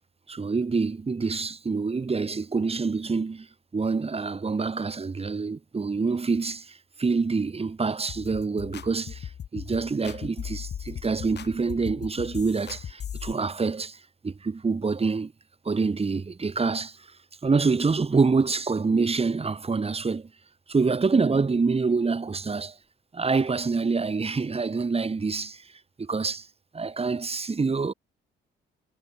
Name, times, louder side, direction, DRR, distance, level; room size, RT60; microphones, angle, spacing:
voice 1, 0.3-3.5 3.7-15.3 15.7-17.1 17.4-20.3 20.7-22.8 23.1-25.7 26.0-26.5 26.7-27.9, right 4 dB, 30° right, 7.2 m, -26 dB
sound 1, 8.1-13.3, left 9 dB, 60° left, 3.3 m, -38 dB
cardioid pair, 90°, 20 cm